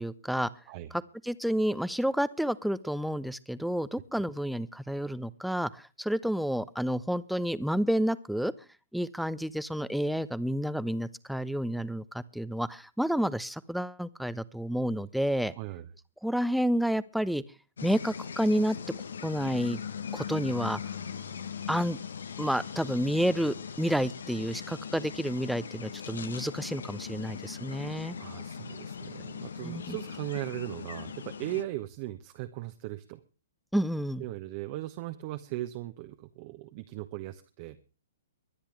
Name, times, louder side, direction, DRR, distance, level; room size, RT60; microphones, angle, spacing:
voice 1, 0.0-0.5 0.9-8.5 8.9-15.5 16.2-17.4 17.8-18.8 19.2-19.8 20.1-20.8 21.7-22.0 22.4-28.2 29.6-30.0 33.7-34.2, equal, ahead, 17 dB, 0.7 m, -30 dB
voice 2, 15.6-15.9 28.2-33.2 34.2-37.8, right 16 dB, 40° right, 7 dB, 1.1 m, -38 dB
sound 1, 17.8-31.6, left 7 dB, 65° left, 1.2 m, -40 dB
23.5 x 10.0 x 3.3 m, 0.34 s
figure-of-eight pair, 115°, 0 cm